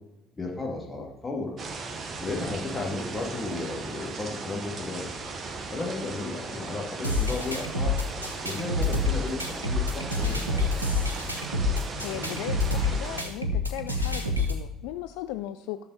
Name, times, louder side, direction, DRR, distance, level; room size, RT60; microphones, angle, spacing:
voice 1, 0.4-1.5 2.2-5.1 5.7-8.0 8.4-10.7, left 3 dB, 25° left, -1 dB, 2.7 m, -34 dB
sound 1, 1.6-13.2, right 4 dB, 35° right, 1.3 m, -37 dB
sound 2, 7.0-14.6, left 2 dB, 90° right, 0.9 m, -28 dB
voice 2, 12.0-15.8, left 14 dB, 65° left, 10 dB, 0.4 m, -37 dB
11.5 x 6.9 x 4.2 m, 0.96 s
figure-of-eight pair, 55°, 0 cm